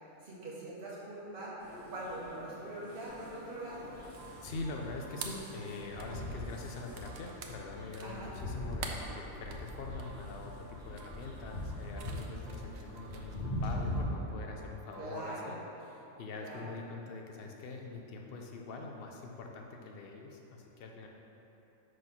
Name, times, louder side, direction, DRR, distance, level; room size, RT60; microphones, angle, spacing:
voice 1, 0.2-1.6 1.9-3.9 8.0-8.3 15.0-15.6 16.4-16.7, right 2 dB, 45° right, -6 dB, 1.3 m, -43 dB
sound 1, 1.6-14.0, left 1 dB, 35° left, 1.5 m, -42 dB
sound 2, 3.0-13.4, right 6 dB, 65° right, 0.8 m, -49 dB
sound 3, 3.2-15.7, right 3 dB, 85° right, 1.2 m, -57 dB
voice 2, 4.4-15.6 15.8-21.1, left 3 dB, 55° left, 1 dB, 0.7 m, -44 dB
5.2 x 3.9 x 5.8 m, 3.0 s
omnidirectional pair, 1.4 m